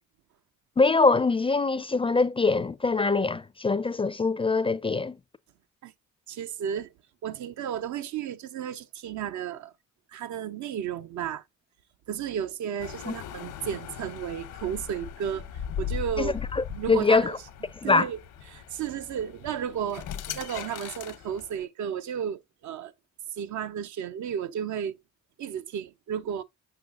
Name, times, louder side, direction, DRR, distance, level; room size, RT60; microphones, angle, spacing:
voice 1, 0.8-5.2 13.1-13.2 16.2-17.3 17.8-18.1, left 3 dB, 20° left, 0.4 m, -23 dB
voice 2, 6.3-6.9 7.2-9.7 10.1-11.4 12.1-15.5 15.8-16.4 16.7-17.3 17.8-18.2 18.5-22.9 23.4-25.0 25.4-26.4, right 8 dB, 70° right, 0.7 m, -33 dB
sound 1, 12.8-21.6, left 8 dB, 85° left, 0.9 m, -39 dB
6.8 x 6.2 x 2.4 m
cardioid pair, 90°, 30 cm